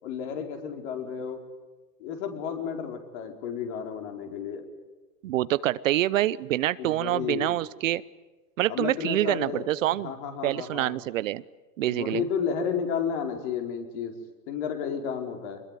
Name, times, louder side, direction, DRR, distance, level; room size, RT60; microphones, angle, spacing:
voice 1, 0.0-1.4 2.0-4.6 6.8-7.5 8.7-11.0 11.9-14.1 14.5-15.6, left 7 dB, 45° left, 4 dB, 4.8 m, -32 dB
voice 2, 5.2-8.0 8.6-10.1 10.4-11.4 11.8-12.2, right 14 dB, 55° right, 18 dB, 0.8 m, -26 dB
26.5 x 21.5 x 9.3 m, 1.2 s
hypercardioid pair, 140°, 48 cm